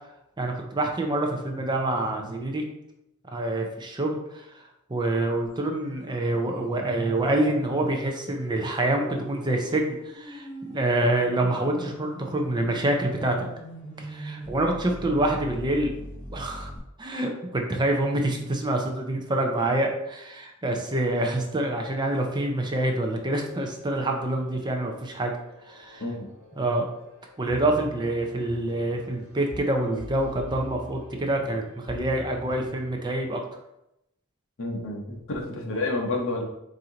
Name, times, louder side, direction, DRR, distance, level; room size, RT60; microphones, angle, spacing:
voice 1, 0.4-2.6 3.3-4.6 4.9-13.5 14.0-15.9 16.3-16.7 17.0-25.3 25.7-26.0 26.5-26.9 27.4-33.4, right 1 dB, 20° right, 2 dB, 0.5 m, -26 dB
sound 1, 5.6-16.8, right 1 dB, 5° left, 1.0 m, -42 dB
sound 2, 23.5-33.2, left 1 dB, 70° right, 1.5 m, -46 dB
voice 2, 34.6-36.4, left 2 dB, 60° left, 1 dB, 0.8 m, -29 dB
4.3 x 2.6 x 3.8 m, 0.86 s
head